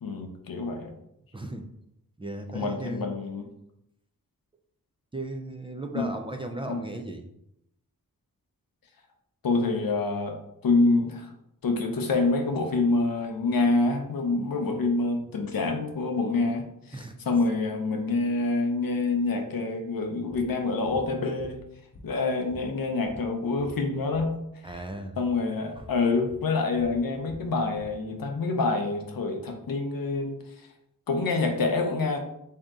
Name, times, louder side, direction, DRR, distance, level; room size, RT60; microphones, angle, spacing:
voice 1, 0.0-0.9 2.5-3.4 5.9-6.1 6.7-6.8 9.4-10.4 10.6-11.3 11.6-21.6 22.0-24.3 25.2-30.4 31.1-32.2, left 3 dB, 75° left, 4 dB, 0.7 m, -26 dB
voice 2, 1.3-1.7 2.2-3.1 5.1-7.3 16.9-17.2 24.6-25.2 25.8-25.9, right 1 dB, 15° right, 4 dB, 0.4 m, -36 dB
sound 1, 20.3-20.5 20.9-21.1 21.4-22.2 22.5-24.3 24.6-24.9 25.2-25.4 25.8-26.0 26.3-28.0, left 2 dB, 45° left, 0.8 m, -48 dB
3.6 x 2.8 x 3.6 m, 0.80 s
cardioid pair, 60°, 35 cm